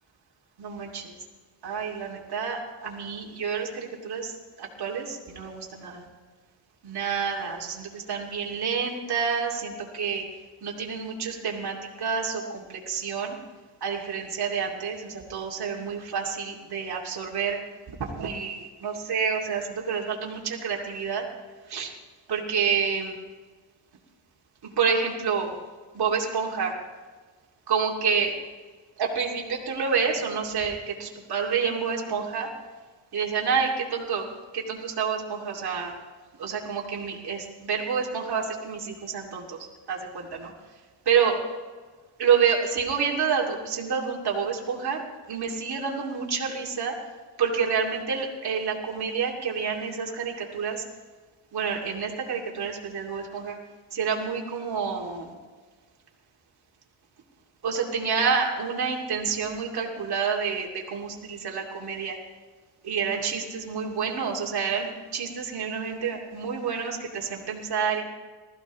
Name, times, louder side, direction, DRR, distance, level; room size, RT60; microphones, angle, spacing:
voice 1, 0.6-1.1 1.6-4.3 4.6-6.0 6.8-10.2 10.6-13.4 13.8-17.6 18.0-21.2 21.7-21.9 22.3-23.1 24.8-25.5 25.9-26.7 27.7-28.3 29.0-32.5 33.1-34.2 34.5-35.9 36.4-39.6 39.9-40.5 41.1-41.4 42.2-45.0 45.3-46.9 47.4-50.8 51.5-53.6 53.9-55.3 57.6-62.2 62.8-68.0, right 6 dB, 55° right, -2 dB, 2.6 m, -28 dB
20.0 x 14.5 x 3.1 m, 1.4 s
cardioid pair, 105°, 45 cm